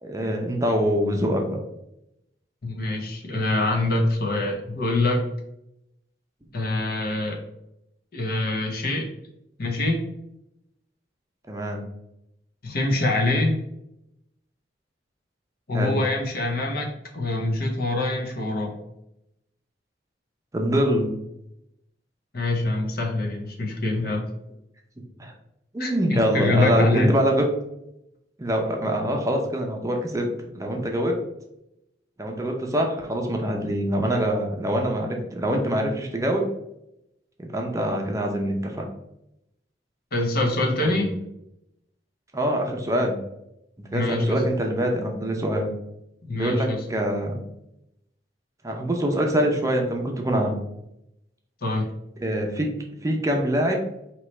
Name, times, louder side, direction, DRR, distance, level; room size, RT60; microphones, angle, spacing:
voice 1, 0.0-1.5 11.5-11.8 15.7-16.0 20.5-21.1 25.2-25.3 25.7-27.5 28.4-30.3 30.5-31.1 32.2-36.5 37.4-38.8 40.8-41.1 42.3-43.2 43.9-45.7 46.3-47.4 48.6-50.6 52.2-52.7 53.0-53.8, equal, 20° right, 1 dB, 0.6 m, -24 dB
voice 2, 2.6-5.2 6.5-7.4 8.1-9.1 9.6-10.0 12.6-13.6 15.7-18.8 22.3-24.2 25.8-27.2 40.1-41.1 43.9-44.4 46.2-46.8 51.6-51.9, left 2 dB, 60° left, 1 dB, 0.9 m, -24 dB
4.6 x 3.0 x 3.1 m, 0.84 s
head